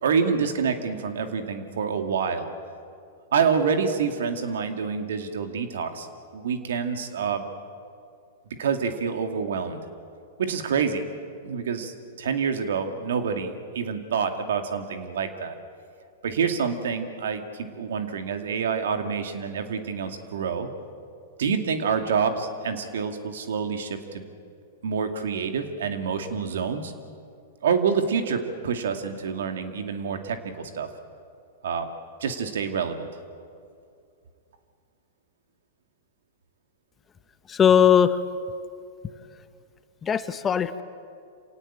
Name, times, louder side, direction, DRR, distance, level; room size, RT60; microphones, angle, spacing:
voice 1, 0.0-2.5 3.3-6.1 6.3-7.5 8.6-9.8 10.4-11.0 11.4-15.5 16.2-20.7 21.4-24.3 24.8-26.9 27.6-30.9 31.6-31.9 32.2-33.1, right 6 dB, 75° right, 6 dB, 2.3 m, -27 dB
voice 2, 37.5-38.2 40.0-40.8, left 8 dB, 20° left, 12 dB, 1.0 m, -19 dB
27.0 x 18.0 x 8.8 m, 2.4 s
hypercardioid pair, 115°, 0 cm